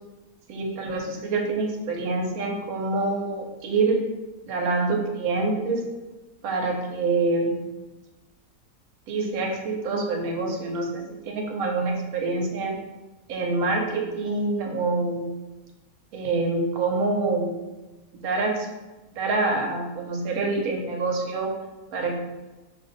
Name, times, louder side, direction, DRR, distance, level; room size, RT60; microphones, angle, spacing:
voice 1, 0.5-4.1 4.5-5.8 6.4-7.5 9.1-12.7 13.3-15.3 16.1-17.5 18.1-18.7 19.2-21.5 21.9-22.1, right 3 dB, 70° right, 1 dB, 1.0 m, -26 dB
2.6 x 2.6 x 3.8 m, 1.1 s
omnidirectional pair, 1.7 m